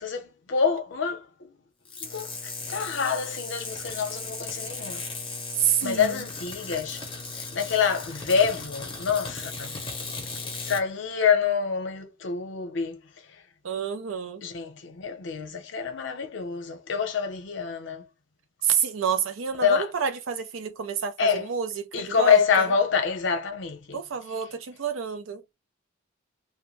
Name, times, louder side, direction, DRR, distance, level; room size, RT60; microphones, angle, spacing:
voice 1, 0.0-1.5 2.0-5.0 5.8-7.0 7.4-9.9 10.6-13.0 13.3-13.4 14.4-18.1 19.6-19.9 21.2-21.5 21.9-24.0, left 6 dB, 65° left, 0.7 m, -26 dB
sound 1, 1.9-10.8, left 3 dB, 25° left, 0.7 m, -37 dB
voice 2, 5.6-6.2 13.6-14.4 18.6-22.7 23.9-25.4, right 7 dB, 90° right, 0.5 m, -28 dB
2.2 x 2.1 x 3.0 m
head